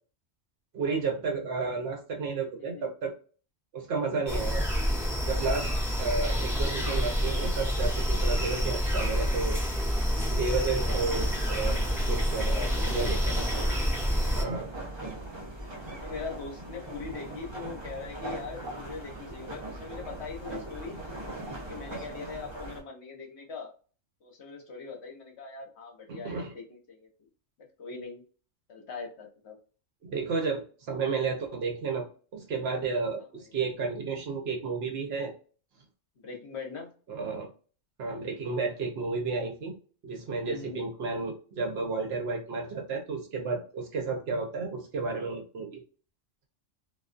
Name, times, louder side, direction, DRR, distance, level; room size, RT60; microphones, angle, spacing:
voice 1, 0.7-3.1 3.7-4.6 5.2-5.7 6.0-9.6 10.3-11.8 12.1-12.6 12.9-13.3 14.3-14.7 26.1-26.5 30.0-32.1 32.3-35.3 37.1-37.5 38.0-39.7 40.0-45.8, right 4 dB, 60° right, 2 dB, 0.8 m, -32 dB
voice 2, 2.6-2.9 12.5-13.2 14.3-14.7 16.0-21.0 21.6-23.7 24.2-27.1 27.8-28.2 28.7-29.6 36.2-36.9 38.4-38.6 40.4-40.8, left 5 dB, 65° left, 1 dB, 0.9 m, -41 dB
sound 1, 4.3-14.4, equal, ahead, 0.8 m, -28 dB
sound 2, 10.8-22.8, right 1 dB, 30° right, 0.5 m, -40 dB
2.3 x 2.3 x 2.4 m, 0.38 s
omnidirectional pair, 1.3 m